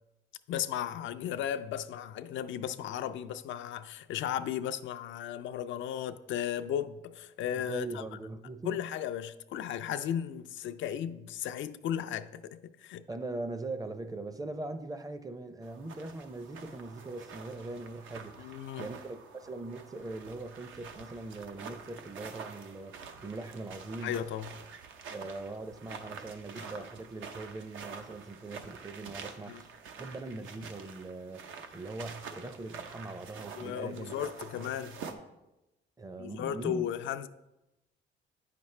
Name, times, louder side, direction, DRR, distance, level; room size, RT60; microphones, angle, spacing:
voice 1, 0.5-8.0 8.6-13.0 18.4-18.9 24.0-24.5 26.6-26.8 29.5-29.6 33.6-35.0 36.2-37.3, left 10 dB, 75° left, 0.4 m, -35 dB
voice 2, 7.5-8.8 13.1-24.1 25.1-29.7 30.0-34.3 36.0-36.9, right 2 dB, 20° right, 0.5 m, -41 dB
sound 1, 15.6-35.1, right 6 dB, 80° right, 0.8 m, -47 dB
8.7 x 5.8 x 3.2 m
cardioid pair, 90°, 20 cm